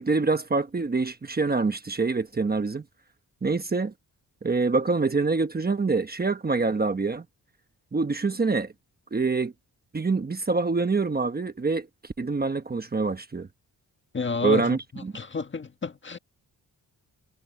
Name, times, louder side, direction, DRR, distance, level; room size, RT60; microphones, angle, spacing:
voice 1, 0.0-2.8 3.4-3.9 4.4-7.2 7.9-8.7 9.1-9.5 9.9-13.5 14.4-15.1, right 4 dB, 25° right, 1.1 m, -25 dB
voice 2, 14.1-16.2, left 4 dB, 30° left, 1.5 m, -31 dB
wide cardioid pair, 145°, 38 cm